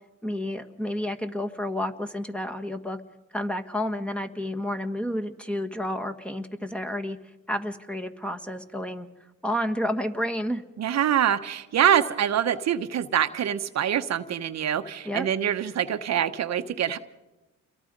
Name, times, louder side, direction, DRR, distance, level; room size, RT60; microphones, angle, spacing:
voice 1, 0.2-3.0 3.3-7.2 7.5-9.1 9.4-10.6 15.0-15.3, left 1 dB, 5° left, 6 dB, 1.6 m, -30 dB
voice 2, 10.8-17.0, right 9 dB, 60° right, 9 dB, 1.1 m, -25 dB
28.5 x 22.5 x 5.3 m, 1.1 s
cardioid pair, 90°, 30 cm